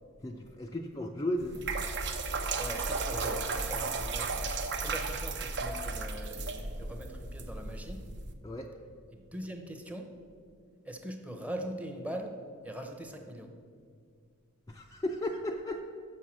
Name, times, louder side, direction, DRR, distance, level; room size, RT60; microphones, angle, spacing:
voice 1, 0.2-1.7 8.4-8.7 14.7-15.8, left 1 dB, 15° left, 1 dB, 0.4 m, -35 dB
sound 1, 1.4-8.3, right 3 dB, 55° right, 0.7 m, -34 dB
voice 2, 2.6-8.0 9.1-10.1 10.8-12.4 12.6-13.5, right 1 dB, 5° right, 4 dB, 0.7 m, -41 dB
6.4 x 6.3 x 7.3 m, 2.2 s
head